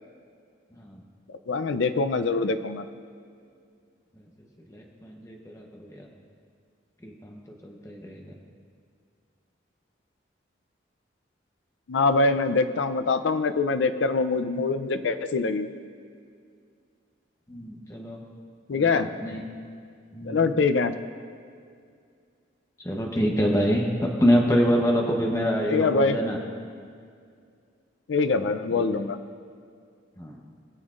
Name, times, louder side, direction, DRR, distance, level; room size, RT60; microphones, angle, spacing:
voice 1, 1.5-2.9 11.9-15.7 18.7-19.1 20.3-20.9 25.6-26.2 28.1-29.2, left 3 dB, 75° left, 11 dB, 0.5 m, -24 dB
voice 2, 4.7-6.1 7.0-8.3 17.5-18.2 18.7-19.4 20.1-20.4 22.8-26.4 28.7-28.8 30.2-30.3, equal, 15° left, 0 dB, 0.8 m, -26 dB
20.5 x 7.0 x 2.5 m, 2.2 s
head